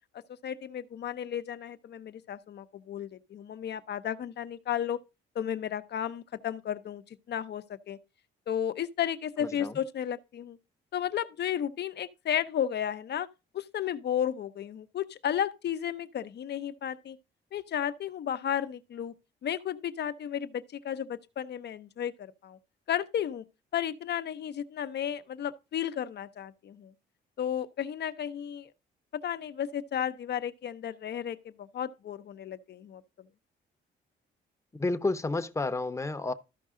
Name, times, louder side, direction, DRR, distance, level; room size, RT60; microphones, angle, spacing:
voice 1, 0.4-5.0 5.3-8.0 8.5-10.6 10.9-13.3 13.5-17.2 17.5-19.1 19.4-22.6 22.9-23.4 23.7-26.9 27.4-28.7 29.2-33.0, left 9 dB, 60° left, 0.8 m, -33 dB
voice 2, 9.4-9.7 34.8-36.3, left 3 dB, 15° left, 0.9 m, -30 dB
13.5 x 5.3 x 3.7 m
cardioid pair, 90°, 20 cm